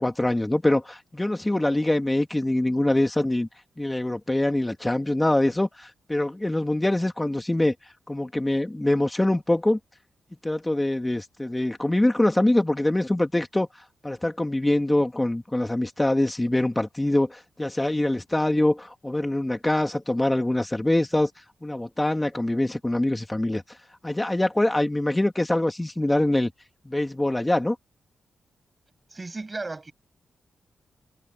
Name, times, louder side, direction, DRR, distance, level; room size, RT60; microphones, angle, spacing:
voice 1, 0.0-3.5 3.8-7.7 8.1-9.8 10.4-13.7 14.0-21.3 21.6-23.6 24.0-26.5 26.8-27.8, left 1 dB, 10° left, 2.9 m, -24 dB
voice 2, 29.1-29.9, right 3 dB, 25° right, 7.1 m, -34 dB
cardioid pair, 95°, 0 cm